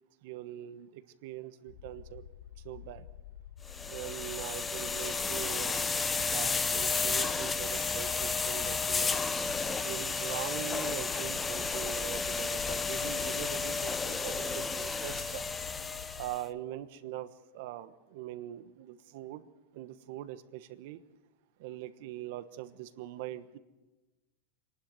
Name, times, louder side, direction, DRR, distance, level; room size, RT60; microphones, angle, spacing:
voice 1, 0.2-2.2 2.6-3.1 3.9-5.8 6.3-9.1 9.8-15.4 16.2-19.5 19.7-21.0 21.6-23.6, right 14 dB, 60° right, 13 dB, 1.2 m, -42 dB
sound 1, 1.7-16.4, left 10 dB, 65° left, 0.9 m, -49 dB
sound 2, 3.7-16.4, left 4 dB, 15° left, 0.7 m, -32 dB
25.5 x 11.5 x 9.4 m, 1.2 s
supercardioid pair, 140°, 0 cm